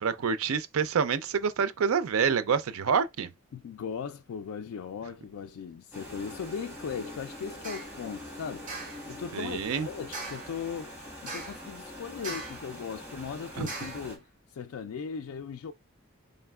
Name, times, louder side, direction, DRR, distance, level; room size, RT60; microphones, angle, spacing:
voice 1, 0.0-3.3 9.3-9.9 13.6-13.7, right 6 dB, 75° right, 0.4 m, -27 dB
voice 2, 3.5-8.7 9.1-10.9 11.2-14.2 14.5-15.7, left 6 dB, 80° left, 0.3 m, -38 dB
sound 1, 5.9-14.2, left 1 dB, 10° right, 1.4 m, -44 dB
sound 2, 7.6-8.0 8.7-9.1 10.1-10.6 11.3-11.7 12.2-12.7 13.7-14.1, right 3 dB, 35° right, 1.3 m, -40 dB
4.2 x 3.8 x 2.3 m
head